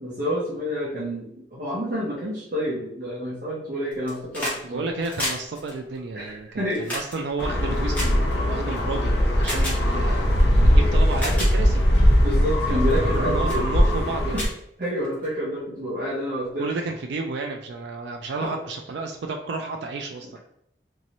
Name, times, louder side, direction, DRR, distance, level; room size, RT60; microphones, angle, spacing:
voice 1, 0.0-4.8 6.1-6.9 12.2-13.6 14.3-14.4 14.8-16.8 18.4-18.6, equal, 50° right, -7 dB, 0.7 m, -28 dB
sound 1, 3.9-4.6 4.9-8.8 9.4-9.8 10.6-10.7 11.1-11.5 12.1-12.3 12.9-13.2 13.5-13.6 14.0-14.1 14.3-15.3 16.4-16.5, left 1 dB, 10° left, 1.0 m, -32 dB
voice 2, 4.6-11.8 13.0-14.4 16.6-20.4, right 3 dB, 80° right, 3 dB, 0.3 m, -32 dB
sound 2, 7.4-14.5, equal, 75° left, 0.6 m, -20 dB
3.0 x 2.6 x 2.9 m, 0.73 s
head